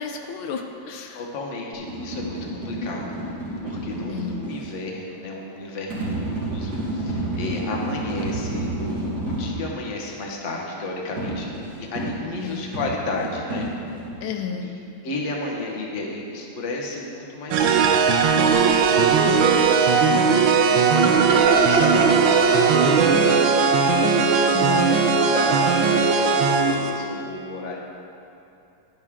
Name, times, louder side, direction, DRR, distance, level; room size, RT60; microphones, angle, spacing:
voice 1, 0.0-1.2 2.8-2.9 4.1-4.4 12.4-12.6 14.2-14.7 21.0-21.2 24.5-24.8, left 7 dB, 80° left, 4 dB, 1.5 m, -32 dB
voice 2, 1.1-3.2 3.6-13.7 14.5-27.8, left 2 dB, 40° left, -1 dB, 1.4 m, -33 dB
sound 1, 1.7-4.6 5.9-9.6 11.2-14.1, right 1 dB, 55° right, 3.5 m, -30 dB
sound 2, 17.5-26.9, right 5 dB, 75° right, 1.5 m, -18 dB
11.5 x 10.5 x 3.7 m, 2.7 s
omnidirectional pair, 2.2 m